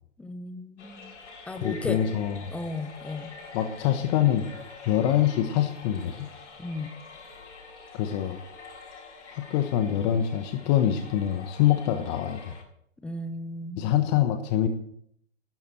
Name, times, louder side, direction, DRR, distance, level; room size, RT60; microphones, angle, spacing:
voice 1, 0.2-1.1 1.5-2.0 2.5-3.3 6.6-6.9 13.0-13.8, left 2 dB, 5° left, 10 dB, 0.5 m, -35 dB
sound 1, 0.8-12.6, left 4 dB, 65° left, 6.7 m, -46 dB
voice 2, 1.6-2.5 3.5-4.5 4.9-6.3 7.9-8.4 9.3-12.6 13.8-14.7, left 11 dB, 35° left, 7 dB, 1.2 m, -25 dB
18.0 x 12.0 x 4.5 m, 0.67 s
hypercardioid pair, 130°, 38 cm